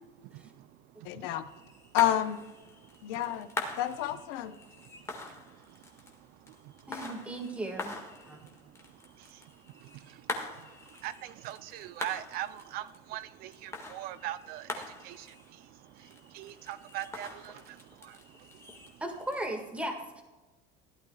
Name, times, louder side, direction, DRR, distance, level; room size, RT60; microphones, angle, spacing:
voice 1, 1.0-1.4 1.9-2.4 3.0-3.5 3.8-4.6, left 13 dB, 85° left, 10 dB, 0.8 m, -29 dB
sound 1, 1.3-19.5, left 2 dB, 15° left, 1.7 m, -44 dB
voice 2, 6.9-8.0 8.3-8.4 19.0-20.2, right 1 dB, 5° right, 3 dB, 1.7 m, -36 dB
voice 3, 11.0-12.8 13.1-14.7 15.0-15.2 16.3-17.5, right 13 dB, 55° right, 14 dB, 0.5 m, -39 dB
16.0 x 11.5 x 2.3 m, 1.1 s
cardioid pair, 145°, 19 cm